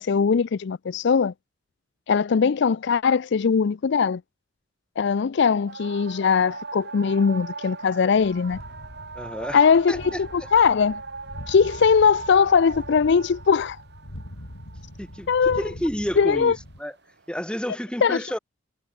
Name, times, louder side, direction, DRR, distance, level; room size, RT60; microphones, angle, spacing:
voice 1, 0.0-1.3 2.1-4.2 5.0-8.6 9.5-11.0 11.5-13.8 15.3-15.6 16.2-16.6 18.0-18.2, left 6 dB, 55° left, 0.4 m, -20 dB
sound 1, 5.7-16.2 16.8-17.4, right 4 dB, 55° right, 3.2 m, -40 dB
sound 2, 8.1-16.8, equal, 80° left, 6.5 m, -43 dB
voice 2, 9.2-9.6 9.9-10.0 15.0-15.3 15.6-16.5 16.8-16.9 17.3-18.4, equal, 5° left, 2.5 m, -29 dB
head